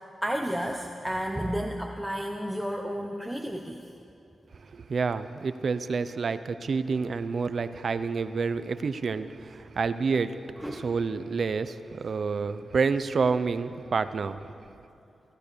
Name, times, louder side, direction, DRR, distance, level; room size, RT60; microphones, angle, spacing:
voice 1, 0.2-3.8 10.6-10.9, equal, 5° right, 2 dB, 1.0 m, -32 dB
voice 2, 4.5-10.4 10.7-14.5, right 5 dB, 45° right, 12 dB, 0.8 m, -29 dB
27.0 x 17.0 x 6.9 m, 2.7 s
wide cardioid pair, 165°, 0 cm